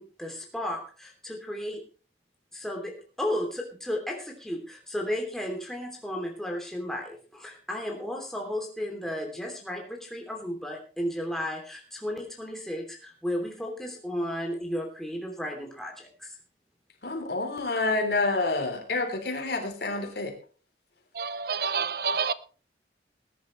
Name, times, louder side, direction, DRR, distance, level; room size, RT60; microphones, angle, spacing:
voice 1, 0.0-1.8 2.5-16.4, left 1 dB, ahead, 3.0 m, -34 dB
voice 2, 17.0-20.3, left 3 dB, 70° left, 3.6 m, -28 dB
voice 3, 21.1-22.3, right 5 dB, 55° right, 0.6 m, -28 dB
20.0 x 10.5 x 3.2 m
head